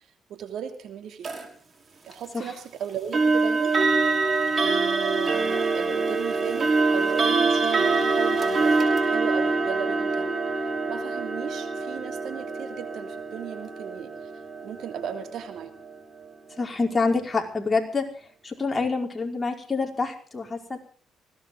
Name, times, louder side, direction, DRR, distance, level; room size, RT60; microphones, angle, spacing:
voice 1, 0.3-1.3 2.0-3.8 4.6-10.4 10.9-14.3 14.6-15.7, right 8 dB, 75° right, 7 dB, 3.0 m, -36 dB
sound 1, 1.2-1.4 3.1-16.0, right 3 dB, 40° right, 5.1 m, -25 dB
voice 2, 16.6-18.0 18.4-20.8, left 4 dB, 25° left, 2 dB, 5.2 m, -26 dB
20.5 x 17.5 x 3.9 m, 0.42 s
cardioid pair, 90°, 0 cm